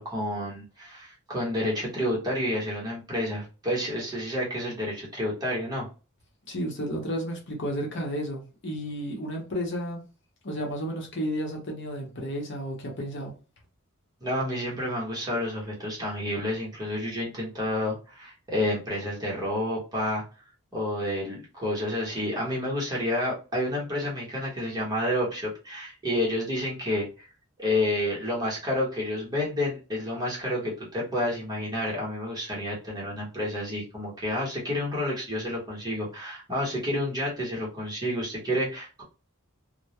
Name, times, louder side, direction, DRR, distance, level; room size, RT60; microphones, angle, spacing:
voice 1, 0.0-5.9 14.2-20.2 20.7-27.3 27.6-39.0, left 1 dB, 20° right, 0.9 m, -29 dB
voice 2, 6.5-10.0 10.4-13.3, equal, 60° left, 0.7 m, -32 dB
2.2 x 2.0 x 2.8 m
head